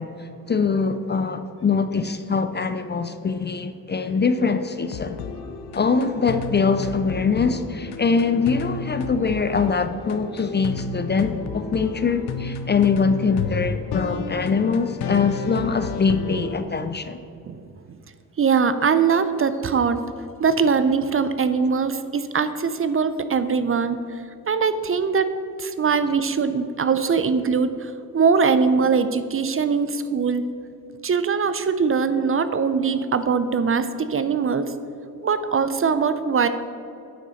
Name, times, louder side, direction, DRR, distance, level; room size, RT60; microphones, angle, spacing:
voice 1, 0.0-5.2 5.7-17.2, left 5 dB, 30° left, 10 dB, 0.4 m, -23 dB
sound 1, 4.8-16.6, left 5 dB, 80° left, 0.7 m, -32 dB
voice 2, 18.4-20.0 20.4-25.3 25.6-30.4 31.0-34.7 35.2-36.5, right 5 dB, 35° right, 11 dB, 0.5 m, -22 dB
9.2 x 4.0 x 6.3 m, 2.5 s
cardioid pair, 75°, 38 cm